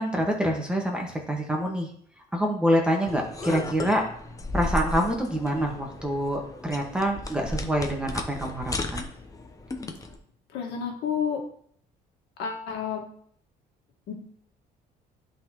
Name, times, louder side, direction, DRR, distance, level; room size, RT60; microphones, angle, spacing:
voice 1, 0.0-1.9 2.3-4.0 4.5-9.1, equal, 5° right, 0 dB, 1.5 m, -26 dB
sound 1, 3.1-10.2, left 1 dB, 20° left, 0.9 m, -35 dB
voice 2, 10.5-11.4 12.4-13.0 14.1-14.2, left 7 dB, 85° left, 1 dB, 1.7 m, -30 dB
10.5 x 4.0 x 3.0 m, 0.63 s
cardioid pair, 110°, 17 cm